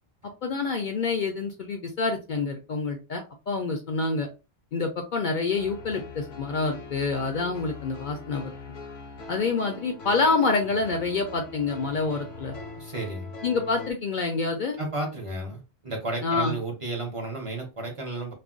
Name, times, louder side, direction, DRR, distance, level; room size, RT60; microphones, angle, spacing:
voice 1, 0.4-4.3 4.7-8.5 9.3-12.6 13.4-14.8 16.2-16.5, left 4 dB, 60° left, 4 dB, 0.6 m, -27 dB
sound 1, 5.5-13.9, left 3 dB, 80° left, 0.9 m, -42 dB
voice 2, 12.8-13.3 14.8-18.3, right 2 dB, 35° right, 1 dB, 0.7 m, -33 dB
2.4 x 2.0 x 3.7 m, 0.30 s
omnidirectional pair, 1.1 m